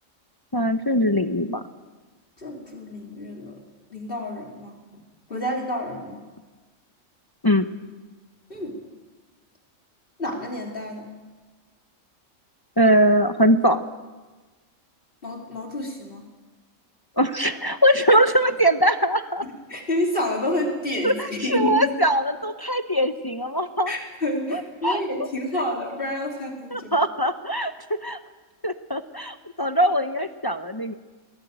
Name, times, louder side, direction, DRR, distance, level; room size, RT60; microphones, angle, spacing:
voice 1, 0.5-1.6 7.4-7.7 12.8-13.8 17.2-19.4 21.0-23.9 24.5-25.0 26.7-27.7 28.0-28.2 28.6-30.9, equal, 20° left, 8 dB, 0.7 m, -21 dB
voice 2, 2.4-3.5 3.9-4.7 5.3-6.2 8.5-8.7 10.2-11.0 15.2-16.2 19.4-21.9 23.9-26.9, left 1 dB, 45° left, 1 dB, 3.2 m, -29 dB
22.0 x 17.0 x 9.1 m, 1.3 s
omnidirectional pair, 1.3 m